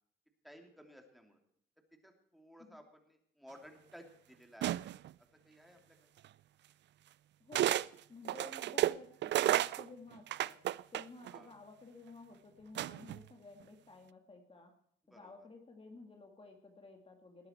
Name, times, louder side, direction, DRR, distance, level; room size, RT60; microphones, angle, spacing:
voice 1, 0.4-1.4 2.0-5.0 5.4-6.1 11.3-11.5 15.1-15.5, equal, ahead, 4 dB, 3.0 m, -57 dB
sound 1, 4.6-5.1 6.2-6.3 7.5-7.9 8.2-11.4 12.8-13.2, right 13 dB, 65° right, 0.4 m, -32 dB
voice 2, 7.4-7.7 8.1-10.6 10.9-14.7 15.1-17.5, left 3 dB, 30° left, 3 dB, 2.3 m, -54 dB
19.5 x 9.7 x 4.5 m, 0.68 s
cardioid pair, 90°, 20 cm